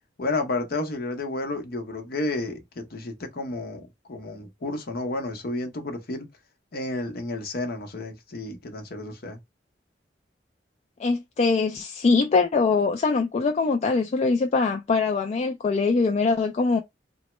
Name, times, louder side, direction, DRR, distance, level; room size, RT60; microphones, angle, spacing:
voice 1, 0.2-6.3 6.7-9.4, left 2 dB, 55° left, 0.7 m, -31 dB
voice 2, 11.0-16.8, left 4 dB, 40° left, 0.3 m, -23 dB
2.9 x 2.1 x 3.0 m
head